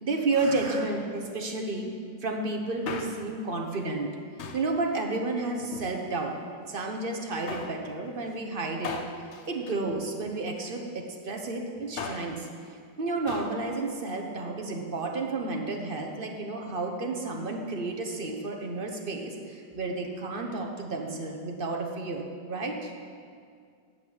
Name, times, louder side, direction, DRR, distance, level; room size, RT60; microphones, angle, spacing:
voice 1, 0.0-1.9 2.2-4.1 4.5-6.4 6.7-9.0 9.5-12.5 13.0-22.9, right 3 dB, 40° right, 2 dB, 0.9 m, -31 dB
Male speech man speaking, 2.6-3.4 4.4-4.8 5.6-6.4 7.5-7.8 8.8-10.5 11.7-12.4 13.3-13.6 13.9-14.0, left 5 dB, 65° left, 0.7 m, -39 dB
8.7 x 6.6 x 8.5 m, 2.2 s
omnidirectional pair, 2.0 m